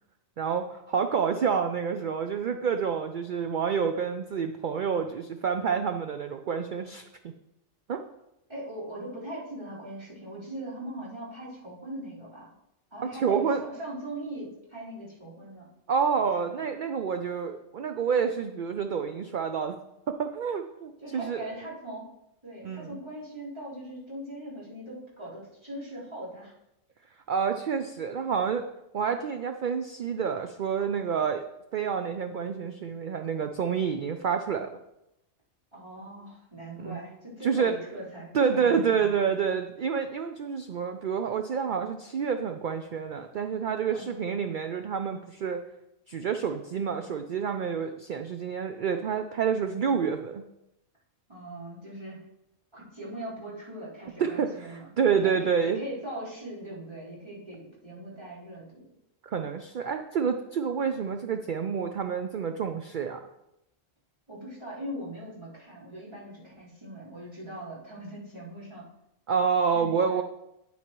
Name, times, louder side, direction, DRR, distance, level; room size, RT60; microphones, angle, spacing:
voice 1, 0.4-7.1 7.9-8.0 13.2-13.6 15.9-19.8 20.1-21.5 22.6-23.0 27.3-28.7 28.9-31.4 31.7-34.7 36.8-37.0 37.4-37.8 38.3-45.6 46.1-50.4 54.2-55.8 59.2-63.2 69.3-70.2, right 6 dB, 60° right, 7 dB, 0.5 m, -28 dB
voice 2, 8.5-12.5 12.9-15.7 16.4-16.7 21.0-22.1 22.4-26.5 35.7-39.1 43.9-44.0 51.3-52.2 52.7-54.9 55.2-58.8 64.3-68.8 69.7-70.2, right 1 dB, 25° right, -11 dB, 4.2 m, -40 dB
9.4 x 9.2 x 3.0 m, 0.87 s
omnidirectional pair, 1.3 m